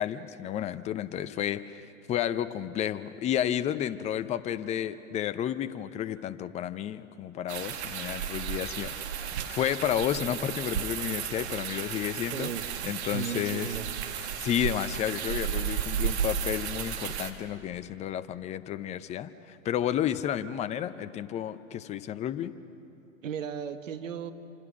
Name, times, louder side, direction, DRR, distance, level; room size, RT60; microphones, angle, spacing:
voice 1, 0.0-8.9 9.2-12.5 12.8-13.8 14.4-22.5, left 10 dB, 15° left, 12 dB, 0.6 m, -31 dB
sound 1, 7.5-17.3, right 8 dB, 55° right, 2.0 m, -33 dB
voice 2, 12.3-13.9 23.2-24.3, right 7 dB, 70° right, 9 dB, 1.5 m, -36 dB
27.0 x 26.0 x 6.3 m, 2.8 s
hypercardioid pair, 115°, 39 cm